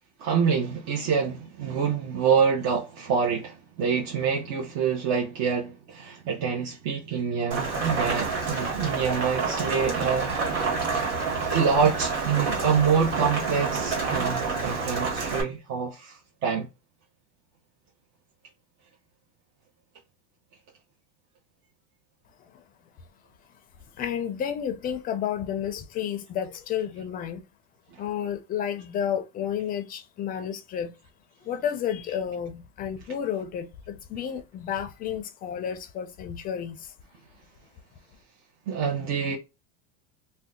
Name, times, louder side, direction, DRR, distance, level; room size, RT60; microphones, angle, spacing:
voice 1, 0.2-10.7 11.4-16.7 38.7-39.4, right 6 dB, 50° right, 0.8 m, -26 dB
Rain, 7.5-15.4, right 4 dB, 85° right, 1.4 m, -28 dB
voice 2, 24.0-27.4 28.0-30.9 31.4-36.9, left 9 dB, 25° left, 0.4 m, -31 dB
2.7 x 2.2 x 3.6 m
supercardioid pair, 140°, 35 cm